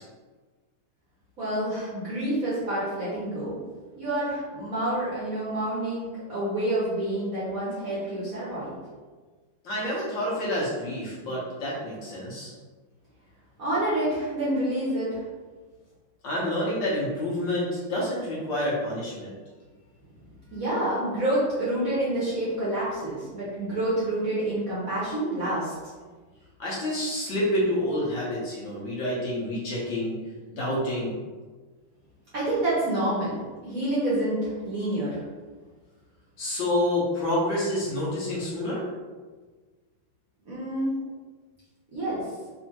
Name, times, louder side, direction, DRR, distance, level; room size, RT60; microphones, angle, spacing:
voice 1, 1.4-3.6 4.0-8.8 13.6-15.2 20.5-25.9 32.3-35.2 40.5-40.9 41.9-42.2, right 1 dB, 50° right, -9 dB, 1.1 m, -28 dB
voice 2, 9.6-12.5 16.2-19.3 26.6-30.2 30.6-31.2 36.4-38.9, left 1 dB, 60° left, -7 dB, 1.6 m, -28 dB
4.2 x 2.7 x 2.8 m, 1.4 s
omnidirectional pair, 2.4 m